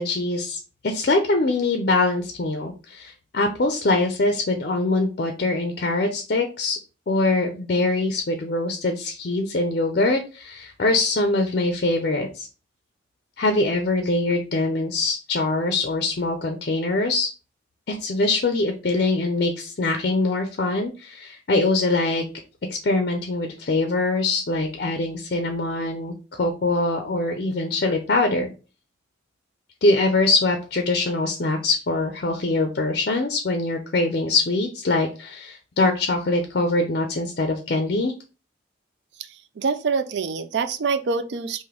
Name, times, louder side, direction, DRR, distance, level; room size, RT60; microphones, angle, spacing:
voice 1, 0.0-6.8 7.1-12.5 13.4-17.3 17.9-22.2 22.7-28.5 29.8-38.1, left 2 dB, 50° left, 5 dB, 0.5 m, -23 dB
voice 2, 39.6-41.6, right 5 dB, 60° right, 11 dB, 0.4 m, -25 dB
3.3 x 2.5 x 3.7 m, 0.33 s
head